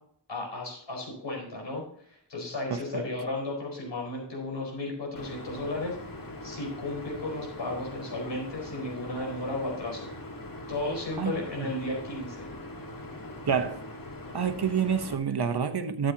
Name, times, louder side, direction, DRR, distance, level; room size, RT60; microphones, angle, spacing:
voice 1, 0.3-5.9 6.4-10.1 10.7-12.5, left 2 dB, 85° left, 4.5 m, -34 dB
voice 2, 2.7-3.0 11.2-11.7 13.5-13.8 14.3-16.1, right 7 dB, 65° right, 1.0 m, -28 dB
sound 1, 5.2-15.2, left 1 dB, 50° left, 1.7 m, -42 dB
13.0 x 7.6 x 2.8 m
wide cardioid pair, 65°, 42 cm